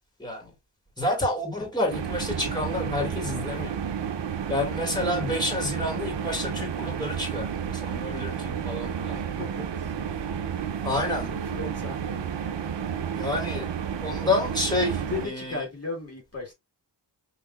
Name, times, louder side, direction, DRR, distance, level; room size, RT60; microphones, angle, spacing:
voice 1, 0.2-0.5 1.0-3.7 4.5-9.2 10.8-11.3 13.1-13.7 14.0-15.6, left 2 dB, 10° left, 1.9 m, -29 dB
sound 1, 1.9-15.3, right 8 dB, 85° right, 0.7 m, -31 dB
voice 2, 9.1-9.9 11.3-12.3 15.0-16.5, left 4 dB, 35° left, 1.6 m, -36 dB
5.8 x 2.9 x 2.3 m
wide cardioid pair, 90°, 42 cm